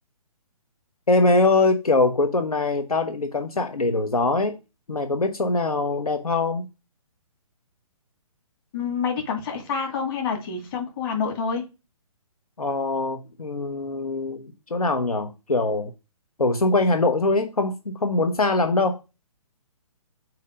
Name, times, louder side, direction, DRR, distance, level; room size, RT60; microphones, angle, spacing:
voice 1, 1.1-4.6 4.9-6.7 12.6-15.9 16.4-19.0, left 2 dB, 85° left, 0.9 m, -23 dB
voice 2, 8.7-11.6, left 6 dB, 40° left, 2.4 m, -27 dB
8.1 x 2.9 x 5.1 m
figure-of-eight pair, 135°, 18 cm